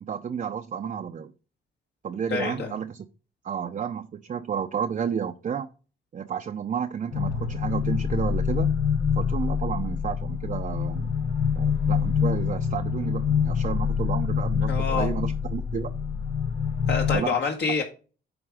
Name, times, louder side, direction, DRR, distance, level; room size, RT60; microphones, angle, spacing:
voice 1, 0.0-1.3 2.0-3.1 3.4-5.7 6.1-8.7 9.2-11.1 11.6-15.9 17.1-17.4, right 7 dB, 40° right, 0.6 m, -31 dB
voice 2, 2.3-2.7 14.7-15.1 16.9-17.8, left 5 dB, 60° left, 1.6 m, -27 dB
sound 1, 7.1-17.2, left 7 dB, 85° left, 1.6 m, -26 dB
8.8 x 3.5 x 4.9 m
cardioid pair, 85°, 19 cm